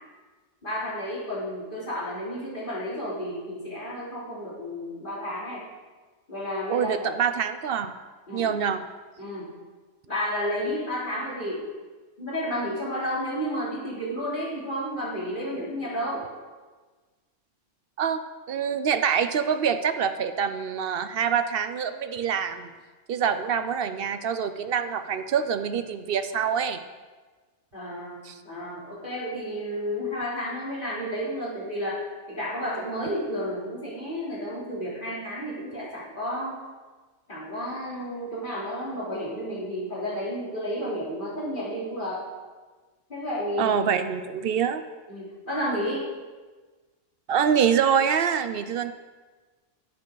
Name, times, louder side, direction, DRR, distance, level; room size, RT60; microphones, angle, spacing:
voice 1, 0.6-5.6 6.3-6.9 8.3-8.6 9.2-9.5 10.0-11.7 12.2-16.2 27.7-32.0 32.3-36.6 37.3-42.2 43.1-43.8 45.1-46.0, equal, 40° left, -7 dB, 3.2 m, -31 dB
voice 2, 6.7-7.9 8.3-8.8 18.0-18.2 18.5-22.7 23.1-26.8 28.2-28.4 43.6-44.8 47.3-48.9, right 7 dB, 60° right, 10 dB, 0.7 m, -25 dB
10.5 x 9.9 x 3.9 m, 1.3 s
omnidirectional pair, 1.3 m